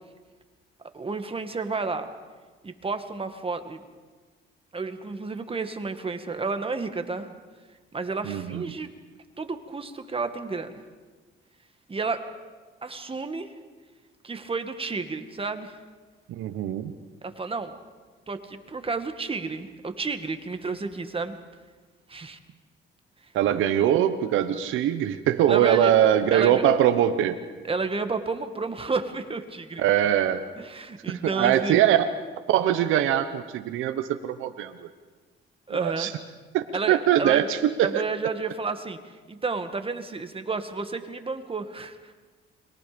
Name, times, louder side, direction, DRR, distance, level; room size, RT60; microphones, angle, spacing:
voice 1, 0.9-2.1 2.6-3.8 4.7-7.3 7.9-8.9 9.4-10.8 11.9-12.2 12.8-13.5 14.2-15.7 17.2-17.8 18.3-21.4 22.1-22.4 25.5-25.9 26.3-26.6 27.6-29.9 30.6-31.8 35.7-36.1 36.7-37.5 37.8-42.1, right 4 dB, 30° right, 7 dB, 2.1 m, -31 dB
voice 2, 8.2-8.6 16.3-16.9 23.3-27.4 29.8-30.4 31.1-32.0 32.5-34.7 35.7-36.1 36.5-38.0, right 11 dB, 85° right, 8 dB, 1.1 m, -22 dB
29.5 x 23.0 x 5.3 m, 1.4 s
cardioid pair, 90°, 20 cm